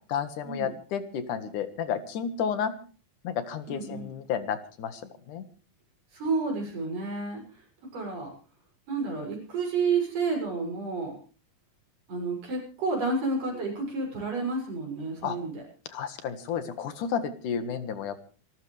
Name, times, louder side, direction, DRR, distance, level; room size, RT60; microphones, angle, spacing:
voice 1, 0.1-2.7 3.2-5.0 5.3-5.4 15.2-15.4 15.9-18.2, left 7 dB, 75° left, 10 dB, 3.1 m, -31 dB
voice 2, 3.7-4.2 6.1-7.4 7.9-8.3 8.9-11.2 12.1-15.6, right 4 dB, 85° right, 0 dB, 8.4 m, -30 dB
28.0 x 13.5 x 3.3 m, 0.38 s
omnidirectional pair, 3.7 m